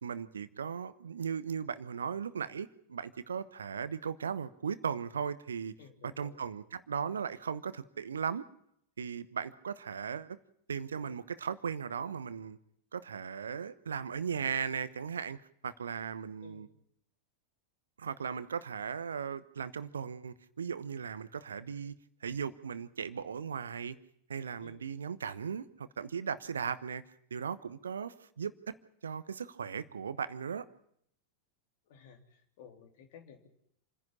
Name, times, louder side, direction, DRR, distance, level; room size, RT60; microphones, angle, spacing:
voice 1, 0.0-5.7 6.0-8.5 9.0-10.4 10.7-12.6 12.9-15.4 15.6-16.7 18.0-21.9 22.2-24.0 24.3-27.0 27.3-28.8 29.0-30.6, right 6 dB, 70° right, 15 dB, 1.1 m, -37 dB
voice 2, 5.8-6.4 16.4-16.7 24.6-24.8 31.9-33.5, left 6 dB, 50° left, 5 dB, 3.4 m, -55 dB
28.0 x 11.0 x 10.0 m, 0.70 s
figure-of-eight pair, 90°, 0 cm